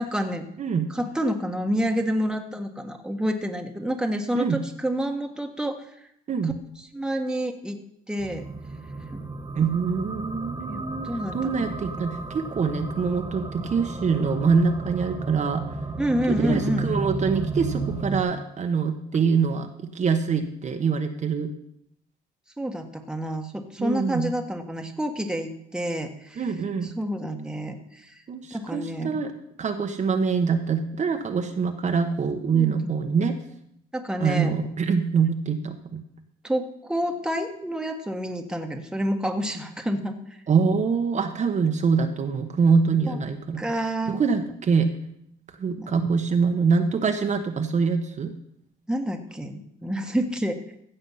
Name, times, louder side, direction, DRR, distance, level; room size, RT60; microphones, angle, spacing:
voice 1, 0.0-0.5 0.9-5.8 6.9-7.8 8.1-8.4 9.1-9.2 10.7-11.7 16.0-16.9 22.6-26.4 27.0-28.1 28.5-29.2 32.5-32.7 33.9-34.5 36.4-40.1 43.1-43.2 43.6-44.2 45.8-45.9 48.9-50.6, equal, 5° right, 4 dB, 1.4 m, -28 dB
voice 2, 0.6-0.9 4.3-4.6 6.3-6.6 9.6-11.1 11.3-15.7 16.3-21.5 23.8-24.3 26.4-26.9 28.3-29.3 29.6-33.4 34.2-36.0 40.5-43.6 44.1-44.9 45.6-48.3, right 5 dB, 40° right, 5 dB, 1.1 m, -24 dB
sound 1, 8.2-18.2, right 3 dB, 25° right, 1.5 m, -33 dB
15.5 x 7.0 x 5.7 m, 0.74 s
cardioid pair, 100°, 18 cm